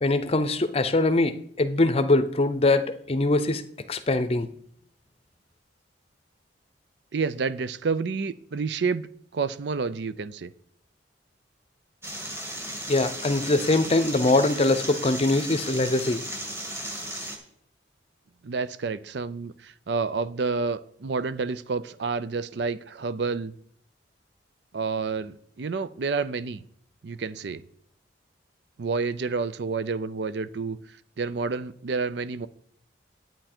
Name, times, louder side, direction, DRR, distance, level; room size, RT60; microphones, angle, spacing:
voice 1, 0.0-3.6 3.9-4.5 12.9-16.2, left 2 dB, 30° left, 11 dB, 0.7 m, -23 dB
voice 2, 7.1-9.1 9.3-10.5 18.4-23.5 24.7-26.6 27.0-27.6 28.8-30.8 31.2-32.5, right 4 dB, 60° right, 16 dB, 0.5 m, -29 dB
sound 1, 12.0-17.4, right 1 dB, 15° right, 1.6 m, -35 dB
10.0 x 8.9 x 4.3 m, 0.65 s
head